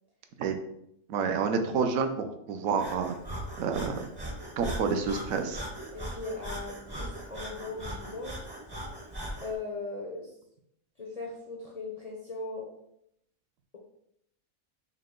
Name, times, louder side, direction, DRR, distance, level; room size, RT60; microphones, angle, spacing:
voice 1, 1.1-3.1 3.6-4.1 4.6-5.6, right 5 dB, 75° right, 6 dB, 1.0 m, -29 dB
Breathing, 2.8-9.5, right 1 dB, 25° right, 0.5 m, -39 dB
voice 2, 5.9-8.4 9.4-10.3 11.0-12.7, left 3 dB, 60° left, -1 dB, 0.4 m, -38 dB
5.5 x 2.1 x 3.7 m, 0.76 s
omnidirectional pair, 1.5 m